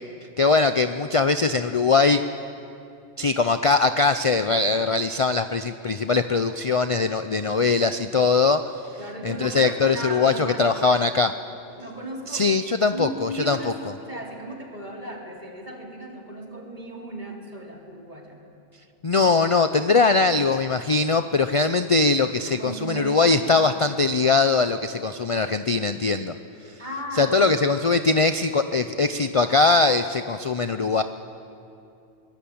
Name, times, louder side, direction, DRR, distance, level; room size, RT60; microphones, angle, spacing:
voice 1, 0.4-2.2 3.2-8.6 9.2-11.3 12.3-13.7 19.0-26.4 27.2-31.0, left 4 dB, 40° left, 10 dB, 0.5 m, -21 dB
voice 2, 9.0-11.1 11.7-12.5 12.9-18.4 22.4-23.8 26.8-27.6, right 1 dB, 35° right, -1 dB, 3.7 m, -36 dB
23.5 x 20.0 x 8.7 m, 2.6 s
omnidirectional pair, 1.3 m